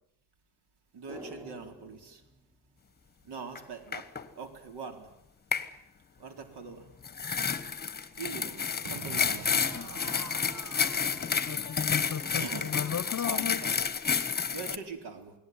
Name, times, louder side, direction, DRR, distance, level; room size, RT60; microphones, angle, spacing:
voice 1, 0.9-2.2 3.2-4.0 4.3-5.1 6.2-6.8 8.2-9.6 12.4-12.8 13.2-13.8 14.5-15.3, right 5 dB, 70° right, 6 dB, 4.4 m, -42 dB
sound 1, 1.1-3.6 3.8-3.9, equal, 10° right, 1.2 m, -50 dB
sound 2, 3.6-3.7 3.9-4.3 5.5-5.7 7.0-14.8, left 6 dB, 25° left, 1.2 m, -30 dB
Crowd / Fireworks, 8.8-14.1, right 6 dB, 45° right, 1.6 m, -47 dB
voice 2, 11.5-13.7, left 8 dB, 40° left, 17 dB, 0.9 m, -35 dB
28.5 x 19.0 x 9.7 m, 0.83 s
wide cardioid pair, 170°, 41 cm